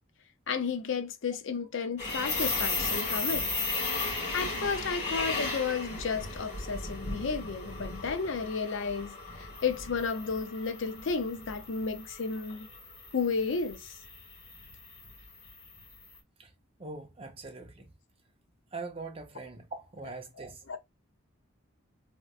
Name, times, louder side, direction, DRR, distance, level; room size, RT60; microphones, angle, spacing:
voice 1, 0.5-3.5 4.3-12.7 13.1-13.9 20.7-20.8, left 5 dB, 65° left, 0.5 m, -32 dB
sound 1, 2.0-16.0, left 3 dB, 30° left, 1.3 m, -36 dB
voice 2, 16.8-17.9 18.7-20.6, right 3 dB, 25° right, 0.6 m, -42 dB
3.3 x 2.9 x 2.4 m
head